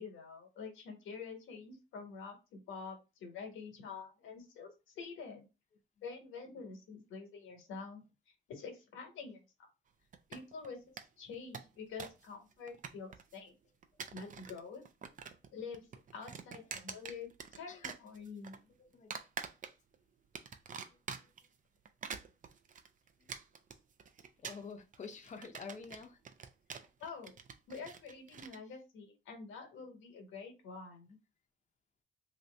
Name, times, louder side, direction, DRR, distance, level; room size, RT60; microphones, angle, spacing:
voice 1, 0.0-5.5 6.0-8.0 8.5-9.7 10.3-13.5 14.1-14.8 15.5-15.9 16.1-18.7 27.0-27.3 27.7-31.2, left 5 dB, 85° left, 3 dB, 1.2 m, -47 dB
sound 1, 10.1-10.7 11.0-11.1 11.3-12.3 12.5-13.4 13.8-14.6 14.9-15.5 15.7-17.6 17.8-18.6 19.1-20.0 20.3-21.5 21.9-28.6, right 6 dB, 40° right, 0.5 m, -46 dB
voice 2, 18.8-19.1 20.9-21.3 23.2-23.3 24.4-26.2, left 5 dB, 40° left, 5 dB, 0.7 m, -49 dB
2.8 x 2.6 x 3.3 m, 0.27 s
cardioid pair, 90°, 20 cm